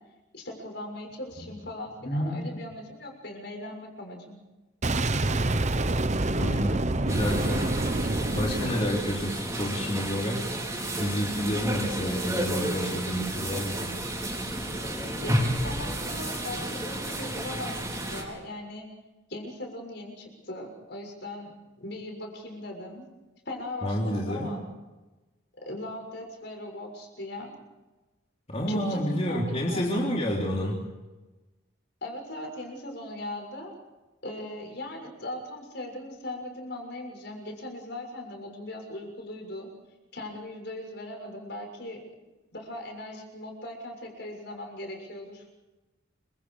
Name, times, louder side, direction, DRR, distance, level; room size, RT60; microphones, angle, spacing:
voice 1, 0.3-4.4 15.2-18.9 19.3-21.5 21.8-23.1 23.4-24.6 25.6-27.6 28.7-30.0 32.0-33.7 34.2-39.7 40.1-42.0 42.5-45.4, left 1 dB, 60° left, 2 dB, 6.8 m, -39 dB
voice 2, 2.0-2.4 6.4-7.6 8.4-10.4 11.0-13.8 23.8-24.5 28.5-30.9, equal, 30° left, -2 dB, 3.6 m, -29 dB
Boom, 4.8-9.7, right 2 dB, 35° right, 1.0 m, -27 dB
sound 1, 7.1-18.2, right 1 dB, 15° right, 4.7 m, -32 dB
28.5 x 25.0 x 5.0 m, 1.1 s
head